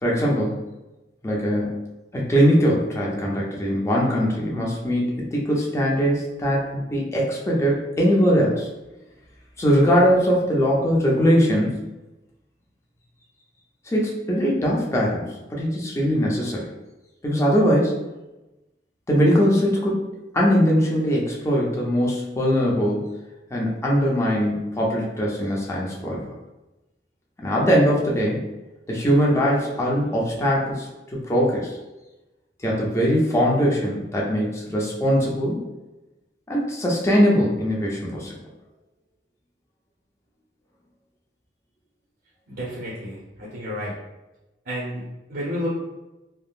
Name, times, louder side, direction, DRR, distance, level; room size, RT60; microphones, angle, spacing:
voice 1, 0.0-0.6 1.2-1.8 2.1-8.7 9.6-11.8 13.9-16.7 17.2-18.0 19.1-20.0 20.3-23.1 23.5-26.3 27.4-28.4 28.9-30.9 31.1-31.8 32.6-35.6 36.5-38.4, equal, 15° left, -4 dB, 0.5 m, -21 dB
voice 2, 42.5-43.9 44.7-45.0 45.3-45.7, equal, 60° right, -5 dB, 0.6 m, -30 dB
3.4 x 2.0 x 2.3 m, 1.0 s
head